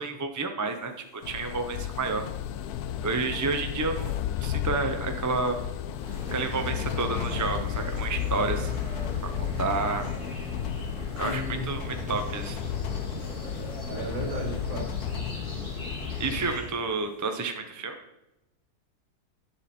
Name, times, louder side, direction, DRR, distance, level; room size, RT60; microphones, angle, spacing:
voice 1, 0.0-2.2 3.0-5.7 6.3-8.7 9.6-10.1 11.2-12.6 16.2-18.0, right 4 dB, 25° right, 5 dB, 0.4 m, -30 dB
sound 1, 1.2-16.5, left 10 dB, 75° left, 1.1 m, -33 dB
sound 2, 5.9-16.7, left 1 dB, 30° left, 2.5 m, -38 dB
voice 2, 11.2-11.7 13.9-14.9 16.2-16.4, right 1 dB, 55° right, 1 dB, 2.4 m, -35 dB
10.5 x 7.0 x 4.3 m, 0.92 s
omnidirectional pair, 1.7 m